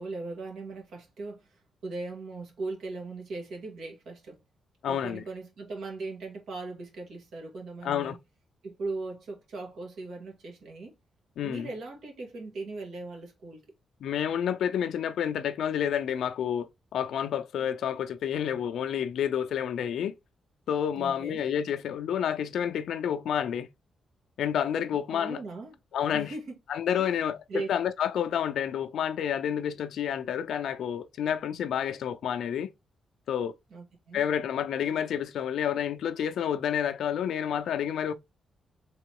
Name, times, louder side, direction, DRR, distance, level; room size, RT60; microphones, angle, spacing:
voice 1, 0.0-4.4 4.9-8.2 8.6-11.0 11.4-13.6 21.0-21.4 25.1-25.8 26.1-26.6 27.0-27.1 27.5-27.7 33.7-34.2, right 3 dB, 80° right, 1.8 m, -39 dB
voice 2, 4.8-5.2 7.8-8.2 11.4-11.7 14.0-20.1 20.7-23.7 24.4-25.4 25.9-26.3 26.7-32.7 33.3-33.5 34.1-38.1, left 9 dB, 80° left, 0.5 m, -29 dB
3.8 x 3.0 x 4.6 m
cardioid pair, 80°, 0 cm